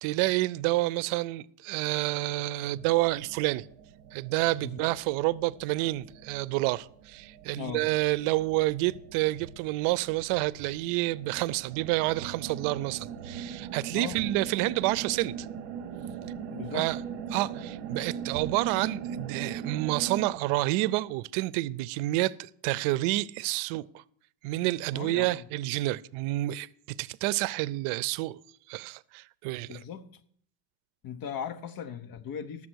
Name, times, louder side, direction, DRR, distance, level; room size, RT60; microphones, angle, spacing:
voice 1, 0.0-3.7 4.1-15.5 16.7-17.0 17.3-24.0 24.4-28.4 28.7-29.8, right 18 dB, 90° right, 0.6 m, -29 dB
sound 1, 2.8-20.3, right 7 dB, 55° right, 1.0 m, -41 dB
voice 2, 7.6-7.9 13.9-14.2 16.5-16.9 24.9-25.5 29.7-30.1 31.0-32.7, left 8 dB, 45° left, 1.0 m, -38 dB
11.5 x 7.3 x 6.2 m
cardioid pair, 145°, 49 cm